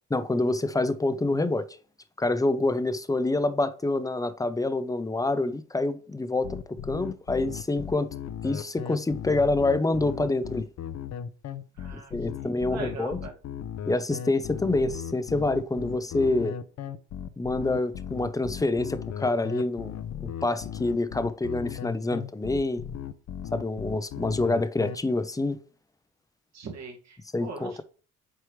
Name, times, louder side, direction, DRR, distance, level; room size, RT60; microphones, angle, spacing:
voice 1, 0.1-1.7 2.2-8.1 8.4-10.7 11.9-13.2 13.9-16.6 17.4-22.8 23.5-25.6 27.3-27.8, left 2 dB, 10° left, 0.6 m, -27 dB
sound 1, 6.4-24.9, left 9 dB, 60° left, 0.7 m, -36 dB
voice 2, 11.7-13.4 26.5-27.8, right 4 dB, 60° right, 2.1 m, -41 dB
7.9 x 4.7 x 3.3 m
cardioid pair, 90°, 30 cm